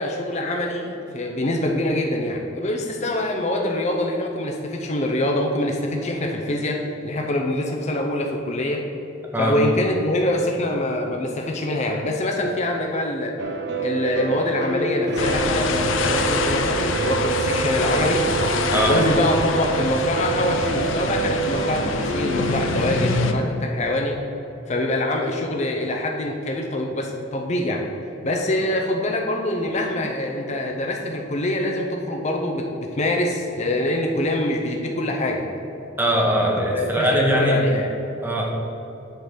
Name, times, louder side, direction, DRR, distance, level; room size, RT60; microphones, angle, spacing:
voice 1, 0.0-8.8 9.4-13.4 13.8-18.2 18.9-24.2 24.7-27.9 28.2-35.4 36.6-37.9, left 1 dB, 35° left, 1 dB, 0.6 m, -24 dB
sound 1, 13.4-23.3, right 5 dB, 60° right, 0.6 m, -27 dB
sound 2, 15.2-23.3, left 4 dB, 75° left, 0.6 m, -25 dB
voice 2, 36.0-37.6 38.2-38.4, equal, 10° right, -2 dB, 1.1 m, -21 dB
7.9 x 3.9 x 6.6 m, 3.0 s
head